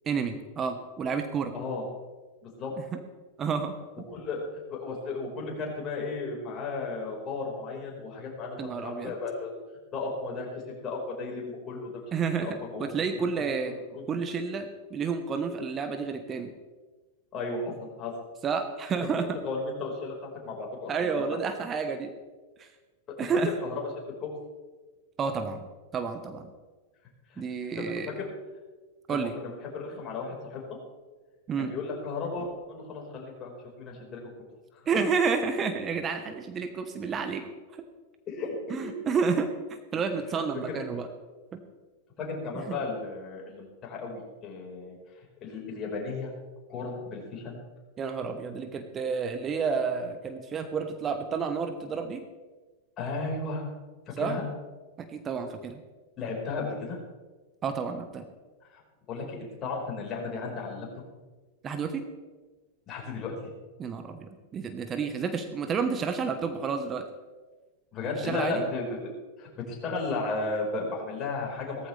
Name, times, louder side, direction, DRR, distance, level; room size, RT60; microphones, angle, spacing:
voice 1, 0.1-1.5 2.9-3.0 3.4-3.7 8.6-9.1 12.1-13.7 14.1-16.5 18.4-19.3 20.9-22.1 22.6-22.7 23.2-23.5 25.2-25.6 25.9-26.5 27.4-28.1 29.1-29.3 31.5-31.7 34.9-37.4 38.7-39.5 39.9-41.1 41.5-41.6 42.5-42.8 48.0-52.2 54.2-54.4 55.0-55.8 57.6-58.2 61.6-62.0 63.8-67.0 68.1-68.6, right 5 dB, 30° right, 8 dB, 1.2 m, -30 dB
voice 2, 1.5-1.8 2.4-2.7 4.1-9.5 9.9-10.5 10.8-12.0 12.4-13.3 13.6-14.0 17.3-18.1 19.0-19.1 19.4-21.4 23.1-23.2 23.6-23.8 24.2-24.3 27.3-27.4 27.8-28.3 29.1-30.6 31.6-33.5 33.8-34.2 34.7-34.8 38.3-38.5 38.8-38.9 40.3-40.8 42.2-45.0 45.4-46.3 46.7-47.6 53.0-53.7 54.2-54.4 56.2-57.0 58.7-58.8 59.1-60.9 62.9-63.3 67.9-69.1 69.4-71.9, left 3 dB, 35° left, -2 dB, 5.0 m, -34 dB
17.0 x 14.5 x 3.5 m, 1.3 s
figure-of-eight pair, 95°, 0 cm